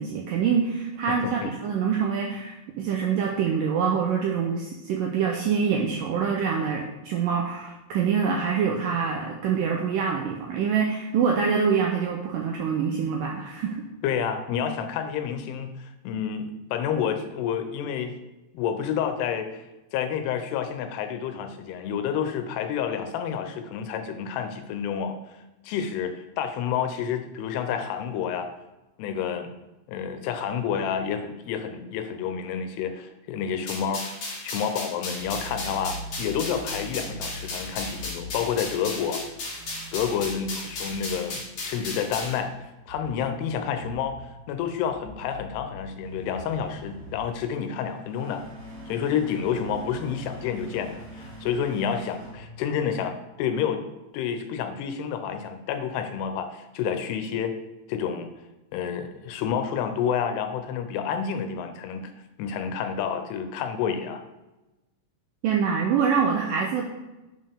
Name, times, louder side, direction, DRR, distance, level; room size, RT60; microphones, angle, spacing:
voice 1, 0.0-13.8 65.4-66.9, right 6 dB, 85° right, 0 dB, 1.9 m, -25 dB
voice 2, 1.1-1.5 14.0-18.2 18.5-19.6 19.9-25.2 25.6-28.5 29.0-29.5 29.9-34.1 34.4-39.2 39.9-42.5 42.9-44.2 44.5-48.4 48.9-53.9 54.1-57.5 57.9-58.3 58.7-62.1 62.4-64.2, left 7 dB, 90° left, 7 dB, 2.8 m, -29 dB
sound 1, 33.7-42.4, left 2 dB, 50° left, 2.4 m, -35 dB
sound 2, 35.1-53.2, equal, 60° right, 3.1 m, -43 dB
7.5 x 5.5 x 3.5 m, 1.0 s
omnidirectional pair, 4.6 m